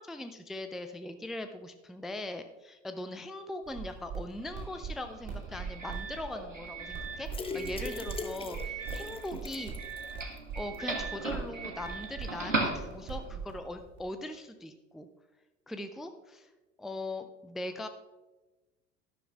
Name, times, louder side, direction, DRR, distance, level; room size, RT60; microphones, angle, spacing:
voice 1, 0.0-9.7 10.6-15.1 15.7-16.5 16.8-17.9, left 1 dB, ahead, 8 dB, 0.4 m, -40 dB
sound 1, 3.6-14.0, right 5 dB, 40° right, 2.7 m, -42 dB
Doorbell, 4.3-13.4, right 3 dB, 85° right, 1.4 m, -39 dB
sound 2, 7.3-10.4 10.7-10.8 11.2-11.3, left 4 dB, 15° left, 0.8 m, -41 dB
12.0 x 11.5 x 2.4 m, 1.1 s
figure-of-eight pair, 75°, 37 cm